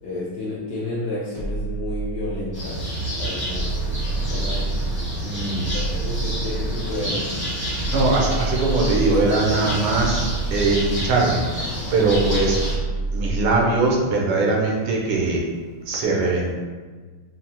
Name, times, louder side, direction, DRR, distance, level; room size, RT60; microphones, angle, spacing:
voice 1, 0.0-2.8 3.1-4.6 5.6-7.3 12.0-12.3, left 1 dB, 70° left, -6 dB, 1.0 m, -31 dB
sound 1, 1.3-2.7 3.5-5.1 5.6-7.0 7.8-9.4 9.9-11.3 12.1-13.7, right 3 dB, 60° right, 0.6 m, -28 dB
sound 2, 2.5-12.7, equal, 25° left, 0.4 m, -28 dB
voice 2, 5.2-5.7 7.6-10.2 10.5-12.6 13.1-15.4 15.9-16.5, right 3 dB, 90° right, -1 dB, 1.6 m, -21 dB
5.9 x 2.0 x 2.7 m, 1.4 s
omnidirectional pair, 2.4 m